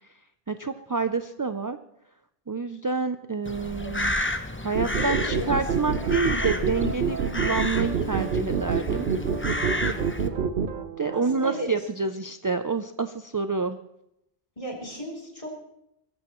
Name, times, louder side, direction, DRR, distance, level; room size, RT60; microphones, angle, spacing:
voice 1, 0.5-1.8 2.5-4.2 4.6-9.1 11.0-13.8, right 4 dB, 35° right, 9 dB, 0.3 m, -28 dB
Crow, 3.5-10.3, left 1 dB, 15° left, 0.7 m, -32 dB
voice 2, 4.7-6.1 11.1-11.7 14.6-15.5, equal, 30° left, -1 dB, 3.5 m, -35 dB
sound 1, 4.7-10.7, right 6 dB, 85° right, 1.1 m, -26 dB
sound 2, 5.6-11.7, right 6 dB, 55° right, 0.9 m, -38 dB
22.5 x 15.0 x 3.1 m, 0.82 s
omnidirectional pair, 1.0 m